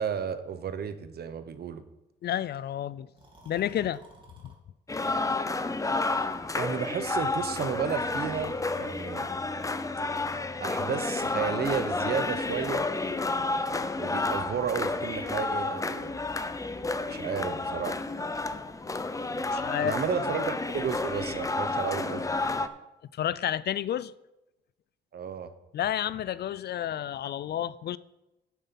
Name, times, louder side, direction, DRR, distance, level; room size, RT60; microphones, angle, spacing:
voice 1, 0.0-1.8 6.5-9.3 10.6-12.8 13.9-16.2 17.1-18.0 19.8-22.3 25.1-25.5, right 7 dB, 55° right, 1.0 m, -32 dB
voice 2, 2.2-3.1 3.5-4.0 19.5-20.0 23.1-24.1 25.7-28.0, left 11 dB, 55° left, 0.4 m, -30 dB
Breathing, 3.1-4.5 5.3-6.0 7.6-9.4, right 1 dB, 25° right, 2.8 m, -55 dB
sound 1, 4.9-22.7, left 3 dB, 15° left, 0.7 m, -31 dB
9.2 x 7.4 x 5.9 m
cardioid pair, 90°, 20 cm